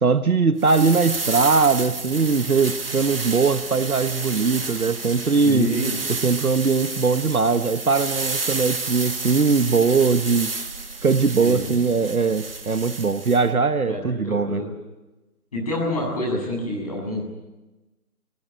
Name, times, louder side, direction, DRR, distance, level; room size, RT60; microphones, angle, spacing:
voice 1, 0.0-5.7 6.1-10.5 11.0-14.6, right 4 dB, 70° right, 10 dB, 1.3 m, -20 dB
sound 1, 0.6-13.4, right 3 dB, 40° right, 1.7 m, -31 dB
voice 2, 5.4-6.0 11.4-11.8 13.8-14.7 15.5-17.2, left 1 dB, 25° left, -1 dB, 7.6 m, -27 dB
27.5 x 19.0 x 9.1 m, 1.1 s
figure-of-eight pair, 175°, 45 cm